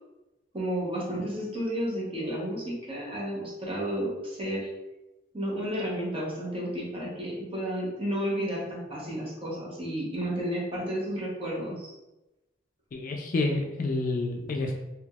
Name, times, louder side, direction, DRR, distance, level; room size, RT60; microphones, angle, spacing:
voice 1, 0.5-4.7 5.3-11.9, equal, 30° right, -4 dB, 0.9 m, -32 dB
voice 2, 12.9-14.7, left 2 dB, 45° left, 2 dB, 0.3 m, -29 dB
3.3 x 2.8 x 2.3 m, 1.0 s
head